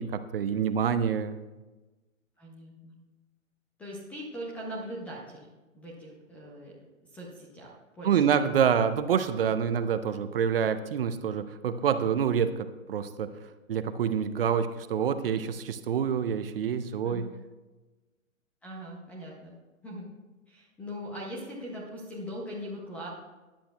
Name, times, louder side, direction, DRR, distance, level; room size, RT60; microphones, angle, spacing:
voice 1, 0.0-1.3 8.0-13.3 13.7-17.3, right 7 dB, 45° right, 11 dB, 0.7 m, -27 dB
voice 2, 2.4-3.0 3.8-5.5 5.7-6.7 7.1-7.7 8.0-8.5 17.0-17.3 18.6-19.5 19.8-20.1 20.5-23.1, equal, 5° left, -4 dB, 0.5 m, -40 dB
16.5 x 10.0 x 2.3 m, 1.2 s
figure-of-eight pair, 130°, 40 cm